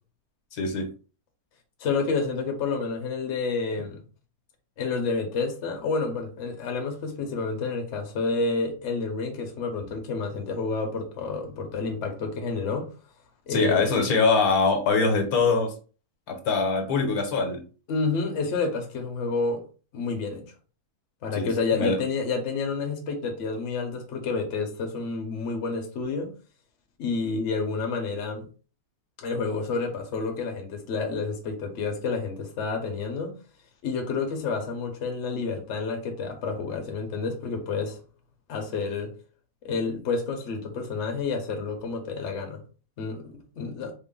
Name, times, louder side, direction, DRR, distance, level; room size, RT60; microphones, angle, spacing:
voice 1, 0.5-0.9 13.5-15.7 16.3-17.6 21.3-22.0, left 4 dB, 75° left, 1.3 m, -23 dB
voice 2, 1.8-4.0 4.8-12.9 13.5-14.1 17.9-19.6 19.9-20.5 21.2-26.3 27.0-28.5 29.2-33.3 33.8-38.0 38.5-39.1 39.6-42.6 43.0-43.9, left 4 dB, 55° left, 1.0 m, -29 dB
3.7 x 2.1 x 3.7 m
omnidirectional pair, 1.6 m